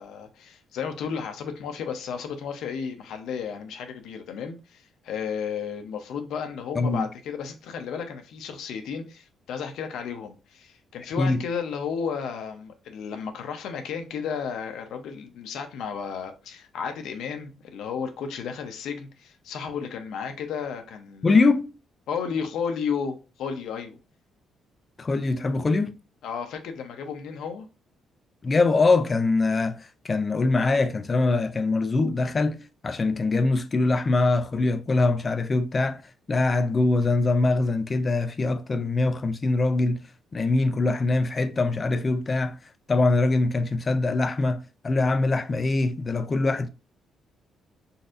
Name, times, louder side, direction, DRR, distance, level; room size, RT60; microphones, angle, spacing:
voice 1, 0.0-21.4 22.1-24.0 26.2-27.7, left 6 dB, 80° left, 0.6 m, -33 dB
voice 2, 6.7-7.0 11.2-11.4 21.2-21.7 25.0-25.9 28.4-36.0 36.3-40.0 40.3-42.6 42.9-46.7, left 3 dB, 25° left, 0.3 m, -23 dB
3.9 x 2.5 x 2.5 m
cardioid pair, 145°, 0 cm